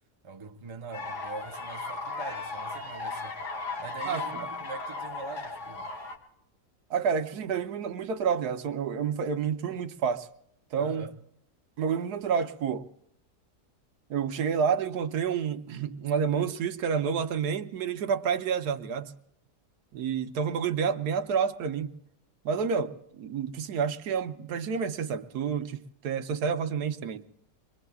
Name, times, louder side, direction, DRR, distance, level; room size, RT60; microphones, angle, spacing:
voice 1, 0.2-3.5 3.8-5.9 10.8-11.1, right 4 dB, 25° right, 0.7 m, -43 dB
sound 1, 0.9-6.2, left 3 dB, 50° left, 2.1 m, -36 dB
voice 2, 4.1-4.5 6.9-10.3 10.7-11.0 11.8-12.9 14.1-19.1 19.9-21.9 22.4-27.3, right 6 dB, 75° right, 1.3 m, -29 dB
26.5 x 22.5 x 2.3 m
omnidirectional pair, 1.7 m